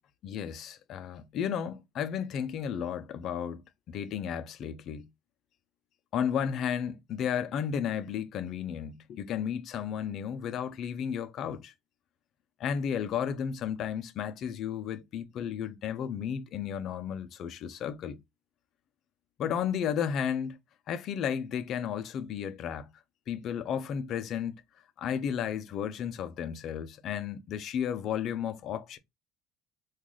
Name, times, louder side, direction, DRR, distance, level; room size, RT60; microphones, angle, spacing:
voice 1, 0.2-3.6 3.9-5.1 6.1-11.7 12.6-18.2 19.4-20.6 20.9-22.9 23.3-24.6 25.0-29.0, left 8 dB, 35° left, 0.4 m, -33 dB
3.8 x 2.3 x 3.0 m
cardioid pair, 175°, 0 cm